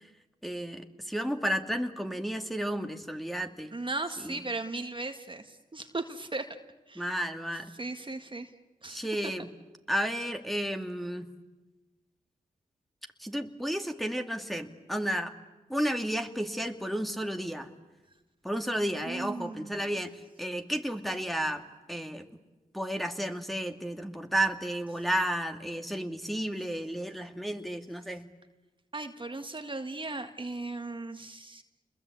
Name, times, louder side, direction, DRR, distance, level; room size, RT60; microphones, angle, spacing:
voice 1, 0.4-3.7 4.2-4.4 7.0-7.7 8.9-9.5 9.9-11.3 13.2-15.3 15.7-17.7 18.4-21.6 21.9-22.2 22.7-28.3, right 1 dB, ahead, 4 dB, 2.3 m, -32 dB
voice 2, 3.7-6.5 6.9-7.1 7.7-8.5 8.8-9.3 19.1-19.9 28.9-31.6, right 2 dB, 35° right, 6 dB, 1.9 m, -37 dB
28.5 x 21.5 x 8.6 m, 1.1 s
cardioid pair, 50°, 15 cm